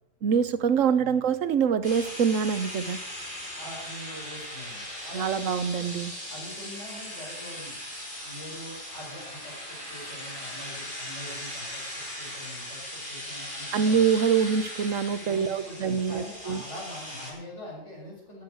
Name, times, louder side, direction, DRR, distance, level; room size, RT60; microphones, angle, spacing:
voice 1, 0.2-3.0 5.1-6.1 13.7-16.6, right 7 dB, 75° right, 13 dB, 1.3 m, -25 dB
sound 1, 1.8-17.3, left 1 dB, 40° left, 4.4 m, -39 dB
voice 2, 3.5-5.8 6.3-7.7 8.2-14.1 15.2-18.4, left 1 dB, 60° left, -2 dB, 5.4 m, -43 dB
17.0 x 8.8 x 6.4 m, 0.75 s
omnidirectional pair, 1.3 m